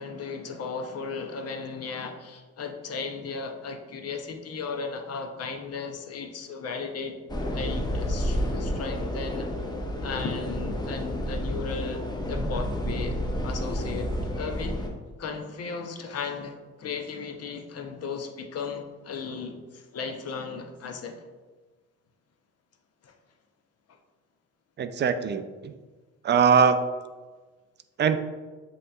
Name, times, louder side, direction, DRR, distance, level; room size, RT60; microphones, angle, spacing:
voice 1, 0.0-7.2 7.5-9.5 10.0-13.2 13.4-14.8 15.2-21.2 23.0-23.1, left 5 dB, 55° left, 4 dB, 0.7 m, -35 dB
sound 1, 7.3-14.9, equal, 15° left, 0.6 m, -30 dB
voice 2, 24.8-25.7 26.2-26.8 28.0-28.2, right 6 dB, 35° right, 10 dB, 0.4 m, -21 dB
7.6 x 2.9 x 2.3 m, 1.3 s
cardioid pair, 90°, 30 cm